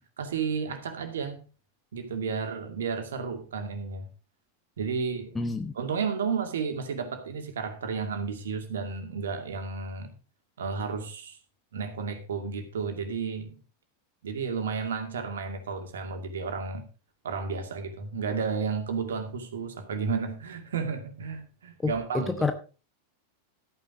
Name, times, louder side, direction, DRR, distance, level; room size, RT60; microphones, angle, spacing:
voice 1, 0.2-1.4 1.9-4.1 4.8-5.3 5.7-10.1 10.6-11.4 11.7-13.6 14.2-16.8 17.2-22.5, right 5 dB, 65° right, 2.4 m, -32 dB
voice 2, 5.3-5.7 21.8-22.5, left 3 dB, 10° left, 1.0 m, -28 dB
13.5 x 9.3 x 3.8 m
figure-of-eight pair, 90°, 0 cm